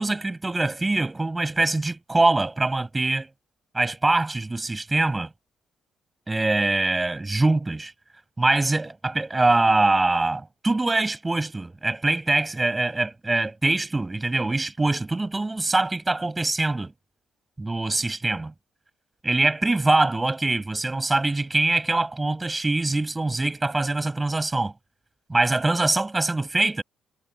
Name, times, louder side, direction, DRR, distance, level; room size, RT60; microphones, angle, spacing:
voice 1, 0.0-3.3 3.7-5.3 6.3-7.9 8.4-16.9 17.6-18.5 19.2-24.7 25.3-26.8, right 2 dB, 20° right, 6.7 m, -23 dB
cardioid pair, 90°, 0 cm